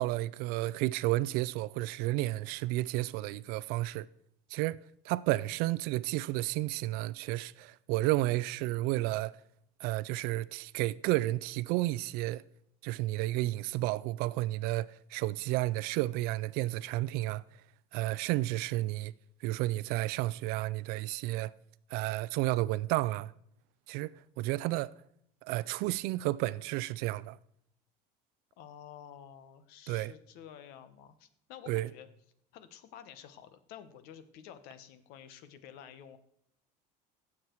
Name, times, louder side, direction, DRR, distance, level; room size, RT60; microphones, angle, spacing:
voice 1, 0.0-4.1 4.5-4.8 5.0-9.3 9.8-12.4 12.8-17.4 17.9-19.1 19.4-21.5 21.9-23.3 23.9-24.9 25.4-27.4 29.9-30.1 31.7-31.9, right 17 dB, 65° right, 0.4 m, -32 dB
voice 2, 28.6-32.1 32.5-36.2, left 9 dB, 65° left, 1.1 m, -51 dB
16.0 x 7.3 x 4.6 m
cardioid pair, 170°, 17 cm